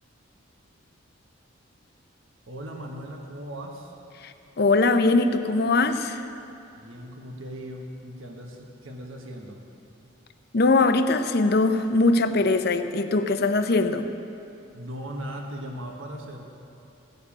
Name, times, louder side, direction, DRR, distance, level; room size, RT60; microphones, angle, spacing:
voice 1, 2.5-3.9 6.7-9.6 14.7-16.5, equal, 75° right, 2 dB, 1.4 m, -38 dB
voice 2, 4.2-6.3 10.5-14.1, left 3 dB, 50° left, 9 dB, 0.6 m, -21 dB
15.5 x 6.7 x 8.7 m, 2.8 s
head